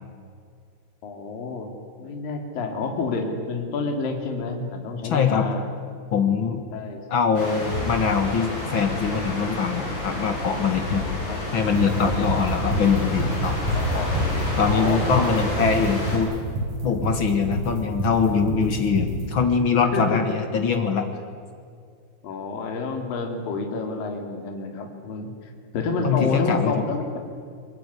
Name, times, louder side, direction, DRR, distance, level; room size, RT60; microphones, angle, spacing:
voice 1, 1.0-5.7 6.7-7.0 11.0-11.4 13.8-14.1 14.7-15.5 19.9-20.2 22.2-27.0, left 3 dB, 55° left, 3 dB, 4.4 m, -29 dB
voice 2, 5.0-5.5 6.1-6.6 7.1-11.0 11.5-13.6 14.6-16.3 16.8-21.1 26.0-26.8, left 6 dB, 80° left, 6 dB, 1.1 m, -23 dB
sound 1, 7.3-16.2, left 1 dB, 30° left, 8.5 m, -28 dB
sound 2, 11.8-19.2, right 2 dB, 55° right, 7.4 m, -28 dB
24.5 x 22.0 x 9.9 m, 2.3 s
omnidirectional pair, 4.9 m